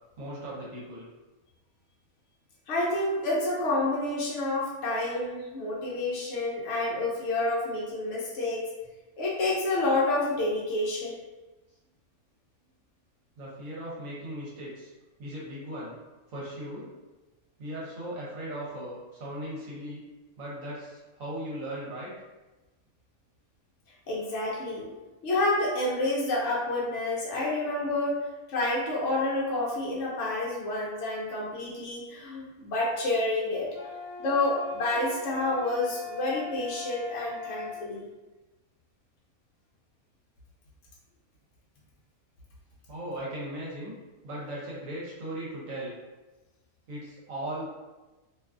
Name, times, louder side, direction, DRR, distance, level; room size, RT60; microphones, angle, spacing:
voice 1, 0.2-1.1 13.4-14.9 15.2-15.9 16.3-16.9 17.6-20.0 20.4-22.1 42.9-43.9 44.2-45.9 46.9-47.7, right 1 dB, 70° right, -6 dB, 1.0 m, -38 dB
voice 2, 2.7-8.7 9.2-11.1 24.1-24.9 25.2-33.9 34.2-38.1, left 2 dB, 65° left, -5 dB, 0.8 m, -29 dB
sound 1, 33.7-37.8, left 4 dB, 35° right, 0.7 m, -40 dB
2.5 x 2.3 x 2.3 m, 1.1 s
omnidirectional pair, 1.5 m